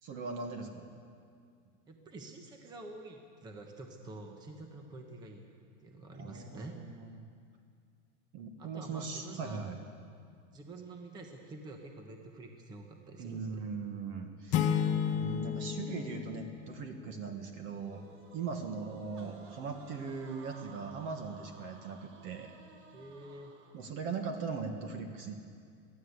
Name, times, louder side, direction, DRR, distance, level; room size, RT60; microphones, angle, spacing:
voice 1, 0.0-0.9 6.2-7.1 8.3-9.8 13.2-14.8 15.1-18.0 18.3-22.5 23.7-25.4, right 5 dB, 35° right, 5 dB, 1.6 m, -40 dB
voice 2, 1.9-5.5 5.8-6.8 8.6-9.6 10.5-13.6 18.5-18.7 22.9-23.6, right 2 dB, 10° right, 3 dB, 1.1 m, -48 dB
sound 1, 14.5-17.3, left 8 dB, 20° left, 0.6 m, -32 dB
sound 2, 17.7-24.0, right 4 dB, 80° right, 3.3 m, -56 dB
23.5 x 15.0 x 8.1 m, 2.3 s
supercardioid pair, 175°, 35 cm